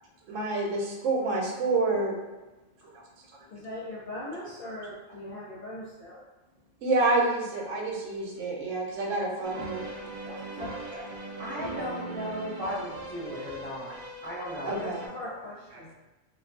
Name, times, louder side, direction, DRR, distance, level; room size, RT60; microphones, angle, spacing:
voice 1, 0.3-2.2 2.8-2.9 6.8-9.9 10.3-10.4 14.6-15.0, right 2 dB, 80° right, -2 dB, 0.9 m, -28 dB
voice 2, 3.5-6.2 10.2-11.0 13.5-13.7 14.7-15.9, left 1 dB, 65° left, -8 dB, 0.5 m, -40 dB
sound 1, 9.4-15.1, right 2 dB, 60° right, 0.6 m, -40 dB
voice 3, 11.4-14.0 14.2-14.7, left 1 dB, 10° left, -11 dB, 0.6 m, -35 dB
2.3 x 2.2 x 2.4 m, 1.1 s
omnidirectional pair, 1.3 m